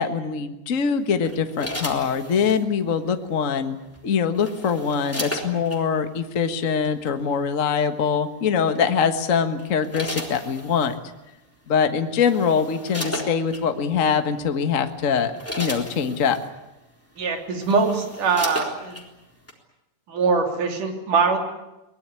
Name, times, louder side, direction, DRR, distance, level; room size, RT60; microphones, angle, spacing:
voice 1, 0.0-3.8 4.0-10.9 11.7-15.3 15.6-16.4, left 6 dB, 40° left, 8 dB, 1.1 m, -23 dB
sound 1, 1.2-2.6 3.9-5.8 6.8-7.1 8.8-9.1 9.6-11.0 11.8-11.9 12.2-13.6 14.4-14.5 15.0-16.5 17.2-17.3 17.5-19.1 19.5-19.6, equal, 5° left, 3.4 m, -34 dB
voice 2, 17.2-19.0 20.1-21.4, right 4 dB, 90° right, 4 dB, 4.8 m, -22 dB
23.0 x 20.0 x 9.6 m, 0.95 s
omnidirectional pair, 3.6 m